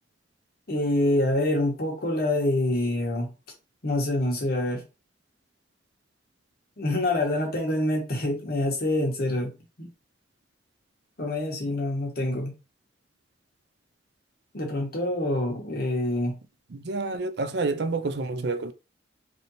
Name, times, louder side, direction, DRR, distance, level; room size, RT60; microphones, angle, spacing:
voice 1, 0.7-3.3 3.8-4.8 6.8-9.5 9.8-9.9 11.2-12.5 14.5-16.3, left 1 dB, 50° left, 1.2 m, -26 dB
voice 2, 16.7-18.7, right 3 dB, 60° right, 0.5 m, -28 dB
3.4 x 2.8 x 4.0 m
head